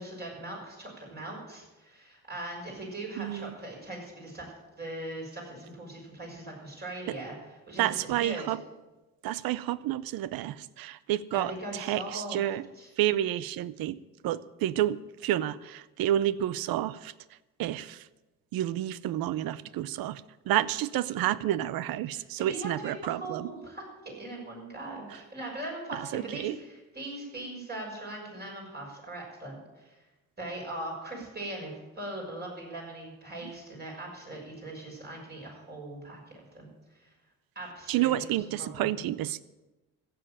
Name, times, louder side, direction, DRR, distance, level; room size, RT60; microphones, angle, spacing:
voice 1, 0.0-7.3 7.7-8.5 11.3-12.4 12.8-12.9 22.1-30.0 30.4-37.1 37.5-38.9, right 1 dB, 30° right, -1 dB, 6.0 m, -40 dB
voice 2, 3.2-3.5 7.1-7.2 7.8-8.6 9.2-12.7 13.0-14.0 14.2-17.1 17.6-18.1 18.5-23.5 25.9-26.6 33.4-33.5 37.9-39.4, right 13 dB, 80° right, 18 dB, 0.7 m, -30 dB
15.0 x 7.8 x 9.0 m, 1.1 s
cardioid pair, 120°, 35 cm